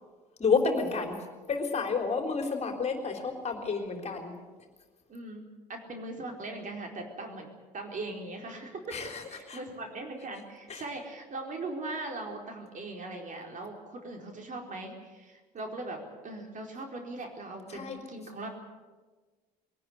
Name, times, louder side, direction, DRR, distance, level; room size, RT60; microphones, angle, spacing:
voice 1, 0.4-1.2 1.5-4.3 8.9-9.2 9.5-9.6 10.7-10.8 17.7-18.0, left 4 dB, 30° left, 4 dB, 3.9 m, -30 dB
voice 2, 5.1-7.5 7.7-9.0 9.3-18.5, right 2 dB, 40° right, 2 dB, 4.4 m, -40 dB
22.5 x 18.5 x 8.3 m, 1.3 s
figure-of-eight pair, 60°, 21 cm